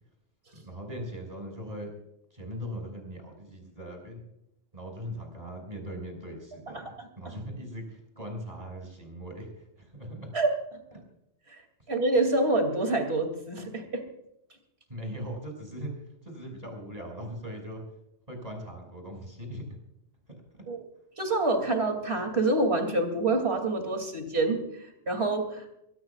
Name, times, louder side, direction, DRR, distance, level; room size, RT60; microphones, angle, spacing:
voice 1, 0.5-1.9 2.3-4.2 4.7-10.3 14.9-17.8 18.3-19.6, equal, 35° right, 1 dB, 6.4 m, -40 dB
voice 2, 6.7-7.1 10.3-10.5 11.9-14.0 20.7-20.8 21.2-24.6 25.1-25.7, right 2 dB, 65° right, 5 dB, 3.1 m, -26 dB
24.5 x 18.0 x 2.4 m, 0.80 s
omnidirectional pair, 1.1 m